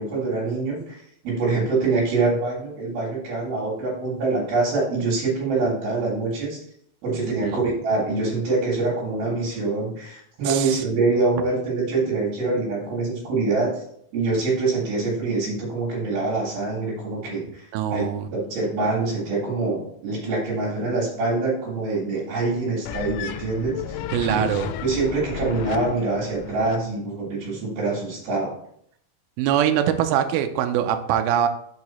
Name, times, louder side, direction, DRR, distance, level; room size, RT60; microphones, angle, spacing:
voice 1, 0.0-6.6 7.0-13.8 14.1-24.0 24.3-24.4 24.8-28.5, right 3 dB, 65° right, -6 dB, 3.2 m, -25 dB
voice 2, 7.3-7.6 10.4-10.8 17.7-18.3 24.1-24.7 29.4-31.5, right 10 dB, 85° right, 7 dB, 2.1 m, -23 dB
sound 1, 22.9-26.9, left 9 dB, 85° left, 2.7 m, -33 dB
5.9 x 4.8 x 4.1 m, 0.69 s
omnidirectional pair, 4.9 m